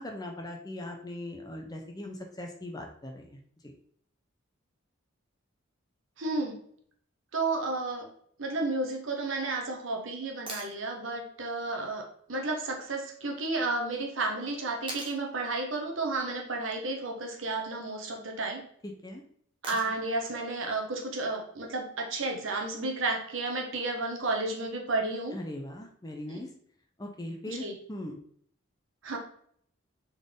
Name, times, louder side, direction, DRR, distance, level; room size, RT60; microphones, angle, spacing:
voice 1, 0.0-3.4 19.0-19.2 25.3-26.5 27.0-28.2, left 1 dB, 20° left, 2 dB, 0.6 m, -40 dB
voice 2, 6.2-6.6 7.3-8.1 8.4-18.6 19.6-25.3 26.3-26.4 27.5-27.7 29.0-29.2, right 2 dB, 70° right, 2 dB, 0.9 m, -32 dB
sound 1, 10.5-10.8 13.0-13.1 14.9-15.2 17.2-17.6 19.6-20.1 22.2-22.3, right 2 dB, 25° right, 0.8 m, -41 dB
4.0 x 3.5 x 3.6 m, 0.63 s
head